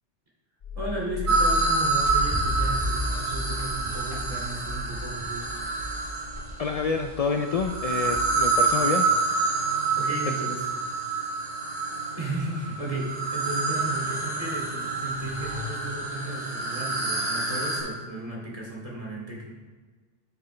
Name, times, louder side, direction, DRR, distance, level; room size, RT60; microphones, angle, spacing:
sound 1, 0.6-3.3, left 3 dB, 50° left, 0.8 m, -34 dB
voice 1, 0.7-5.6 10.0-10.6 12.1-19.5, right 1 dB, 30° right, -4 dB, 2.6 m, -34 dB
sound 2, 1.3-6.5 7.3-17.8, right 3 dB, 60° right, 3.3 m, -27 dB
sound 3, 1.8-8.6, left 1 dB, 20° left, 1.8 m, -34 dB
voice 2, 6.6-9.1, left 5 dB, 75° left, 5 dB, 0.3 m, -27 dB
12.0 x 6.9 x 3.3 m, 1.4 s
omnidirectional pair, 1.2 m